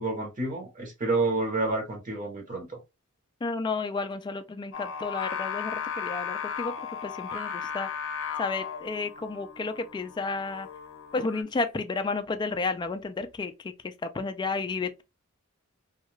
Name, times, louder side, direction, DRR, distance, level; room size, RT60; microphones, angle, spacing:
voice 1, 0.0-2.8, right 2 dB, 40° right, 0.8 m, -29 dB
voice 2, 3.4-7.9 8.4-10.7 11.1-15.0, left 3 dB, 20° left, 0.3 m, -32 dB
Singing, 4.7-11.4, left 7 dB, 65° left, 0.6 m, -36 dB
2.3 x 2.2 x 3.0 m
head